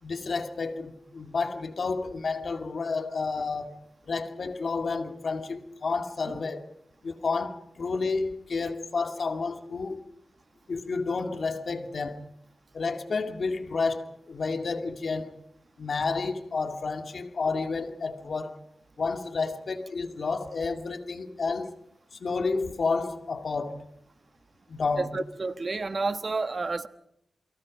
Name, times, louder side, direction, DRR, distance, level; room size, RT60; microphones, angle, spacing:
voice 1, 0.0-6.7 7.0-10.1 10.7-12.3 12.7-15.4 15.8-18.6 19.0-21.8 22.1-23.9 24.7-25.2, left 4 dB, 65° left, 2.2 m, -30 dB
voice 2, 25.0-26.9, right 3 dB, 50° right, 1.3 m, -30 dB
28.0 x 24.0 x 5.3 m
cardioid pair, 60°, 0 cm